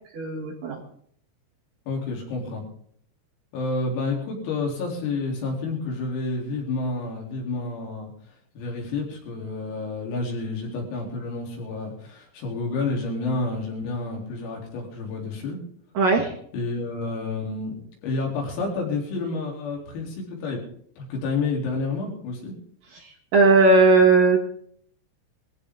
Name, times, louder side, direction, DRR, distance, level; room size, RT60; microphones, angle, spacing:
voice 1, 0.1-0.8 16.0-16.3 23.3-24.4, right 3 dB, 60° right, -1 dB, 2.6 m, -17 dB
voice 2, 1.9-2.6 3.5-8.1 8.6-15.6 16.5-17.7 18.0-20.6 21.0-22.5, left 3 dB, 90° left, -1 dB, 6.3 m, -29 dB
20.5 x 15.0 x 3.8 m, 0.64 s
omnidirectional pair, 6.0 m